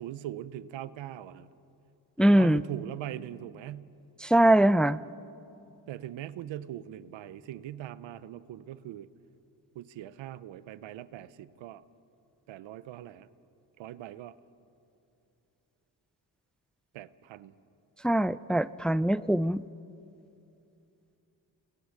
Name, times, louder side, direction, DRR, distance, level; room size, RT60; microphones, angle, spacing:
voice 1, 0.0-1.5 2.2-3.9 5.9-9.1 9.7-11.8 12.5-13.3 13.8-14.3 16.9-17.5, right 12 dB, 85° right, 16 dB, 0.8 m, -41 dB
voice 2, 2.2-2.6 4.2-5.0 18.0-19.6, right 1 dB, ahead, 16 dB, 0.5 m, -22 dB
28.0 x 19.5 x 6.5 m, 2.7 s
supercardioid pair, 50°, 44 cm